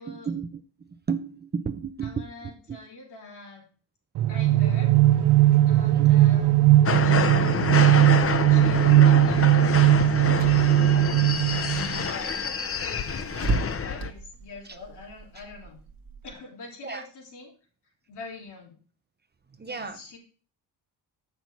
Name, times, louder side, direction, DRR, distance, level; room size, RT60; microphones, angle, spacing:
voice 1, 0.1-2.8 5.9-6.2 10.0-10.2 11.6-11.9 14.6-14.8 16.8-17.1 19.5-20.0, right 6 dB, 25° right, 10 dB, 0.7 m, -34 dB
voice 2, 2.0-3.7 4.3-4.9 5.7-6.5 6.9-8.0 8.5-10.8 11.7-12.4 13.3-15.8 16.2-17.5 18.1-18.8 19.7-20.2, left 3 dB, 80° left, -2 dB, 3.4 m, -45 dB
sound 1, 4.1-12.1, right 14 dB, 85° right, 0.6 m, -19 dB
sound 2, 6.9-14.1, left 6 dB, 35° left, 0.7 m, -28 dB
Car / Engine, 8.0-16.3, right 3 dB, 60° right, 1.1 m, -37 dB
7.0 x 6.0 x 4.5 m, 0.40 s
cardioid pair, 95°, 40 cm